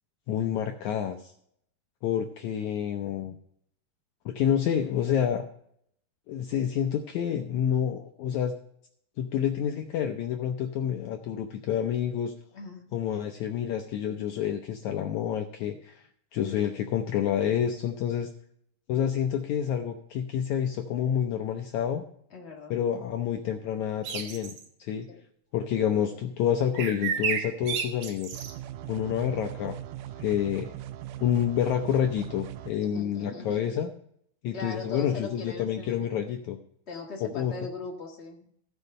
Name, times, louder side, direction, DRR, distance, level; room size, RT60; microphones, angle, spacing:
voice 1, 0.3-1.3 2.0-3.3 4.2-5.4 6.3-8.5 9.2-12.3 12.9-16.1 16.3-18.3 18.9-22.0 22.7-24.5 24.8-25.1 25.5-28.3 28.9-29.8 30.2-30.7 31.2-33.9 34.4-36.6 37.2-37.5, left 9 dB, 85° left, 4 dB, 1.6 m, -28 dB
voice 2, 22.3-22.8 25.1-25.2 32.8-33.6 34.5-36.2 36.9-38.5, left 3 dB, 55° left, -1 dB, 0.7 m, -39 dB
sound 1, 24.0-24.6 26.8-28.5, right 7 dB, 65° right, 2.1 m, -31 dB
sound 2, 28.3-32.7, right 13 dB, 90° right, 1.8 m, -40 dB
15.0 x 5.4 x 5.4 m, 0.68 s
omnidirectional pair, 4.3 m